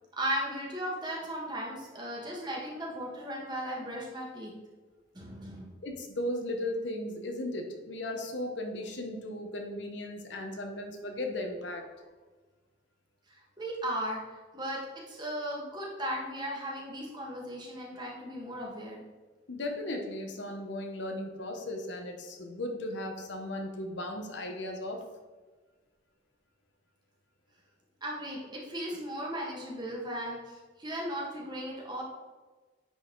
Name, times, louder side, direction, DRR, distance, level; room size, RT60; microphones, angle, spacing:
voice 1, 0.2-4.5 5.1-5.7 13.3-14.2 14.5-14.8 15.1-19.0 28.0-32.0, equal, 20° right, -3 dB, 1.5 m, -36 dB
voice 2, 5.8-11.9 19.5-25.1, left 1 dB, 65° left, 3 dB, 1.0 m, -36 dB
9.5 x 4.1 x 3.9 m, 1.3 s
head